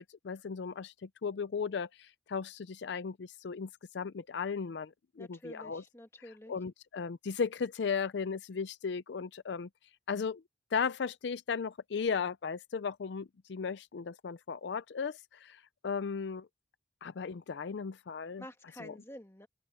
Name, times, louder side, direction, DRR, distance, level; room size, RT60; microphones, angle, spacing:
voice 1, 0.0-3.7 3.9-5.8 6.2-9.7 10.1-10.4 10.7-16.5 17.0-18.4 18.8-18.9, left 5 dB, 65° left, 0.4 m, -36 dB
voice 2, 5.2-6.5 18.4-19.5, left 1 dB, 15° left, 1.9 m, -49 dB
open air
head